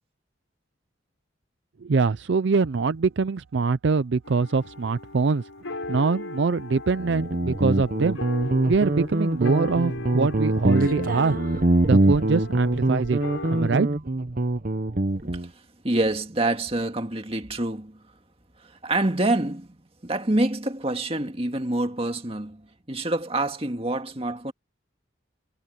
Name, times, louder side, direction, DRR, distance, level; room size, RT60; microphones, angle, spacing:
voice 1, 1.8-5.4 5.9-8.2 8.7-11.3 11.8-13.2 13.5-13.9, right 4 dB, 60° right, 0.5 m, -23 dB
sound 1, 4.2-13.8, left 2 dB, 90° left, 4.4 m, -37 dB
Guitar, 7.0-15.5, right 1 dB, 45° right, 1.1 m, -24 dB
voice 2, 15.2-15.5 15.8-18.0 18.8-19.8 20.0-24.5, right 2 dB, 30° right, 2.0 m, -26 dB
head